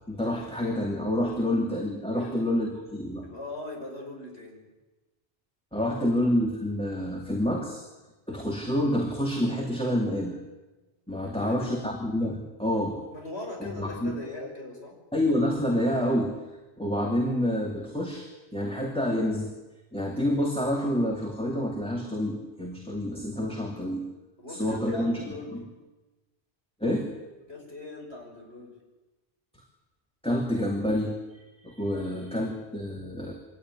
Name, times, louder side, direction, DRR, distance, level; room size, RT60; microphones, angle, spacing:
voice 1, 0.1-3.2 5.7-7.8 8.3-10.4 11.1-13.0 13.6-14.2 15.1-16.4 16.8-19.5 19.9-24.0 24.5-25.2 25.5-25.6 26.8-27.1 30.2-33.3, left 1 dB, 5° left, -1 dB, 2.7 m, -28 dB
voice 2, 3.2-4.6 5.8-6.1 11.2-11.7 13.1-14.9 24.4-25.5 27.5-28.7 31.9-32.2, left 2 dB, 80° left, 1 dB, 6.2 m, -40 dB
23.5 x 18.0 x 9.8 m, 1.1 s
omnidirectional pair, 1.1 m